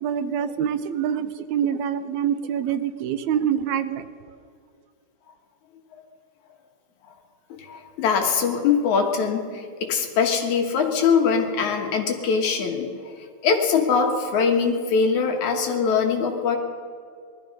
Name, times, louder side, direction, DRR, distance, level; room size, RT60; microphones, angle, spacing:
voice 1, 0.0-4.1, right 8 dB, 80° right, 2.0 m, -25 dB
voice 2, 7.5-13.1 13.4-16.6, left 5 dB, 80° left, 3.0 m, -22 dB
20.5 x 13.0 x 5.3 m
omnidirectional pair, 3.3 m